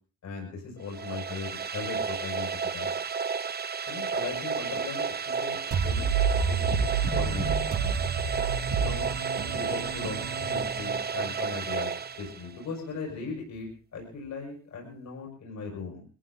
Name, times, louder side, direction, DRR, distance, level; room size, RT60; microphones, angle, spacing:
voice 1, 0.2-2.9 3.9-6.0 6.5-6.9 7.1-7.5 8.8-9.1 9.5-16.0, left 4 dB, 65° left, 0 dB, 6.1 m, -38 dB
sound 1, 0.8-12.8, right 6 dB, 30° right, 1.0 m, -32 dB
sound 2, 5.7-11.3, right 6 dB, 75° right, 2.9 m, -29 dB
22.0 x 15.0 x 4.0 m, 0.39 s
cardioid pair, 90°, 30 cm